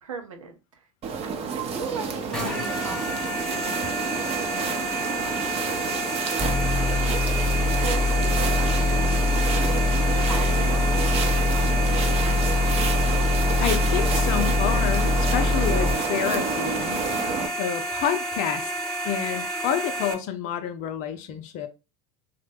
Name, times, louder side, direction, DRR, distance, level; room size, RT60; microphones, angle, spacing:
voice 1, 0.0-0.8 1.2-5.2 6.9-10.9, right 5 dB, 90° right, 0.6 m, -39 dB
sound 1, 1.0-17.5, right 5 dB, 40° right, 0.7 m, -29 dB
sound 2, 2.3-20.1, right 1 dB, 5° left, 0.8 m, -30 dB
sound 3, 6.4-16.0, left 3 dB, 10° right, 1.3 m, -23 dB
voice 2, 13.6-17.0 17.6-18.7 19.0-21.7, left 9 dB, 55° left, 0.5 m, -28 dB
2.9 x 2.1 x 3.3 m
hypercardioid pair, 80°, 16 cm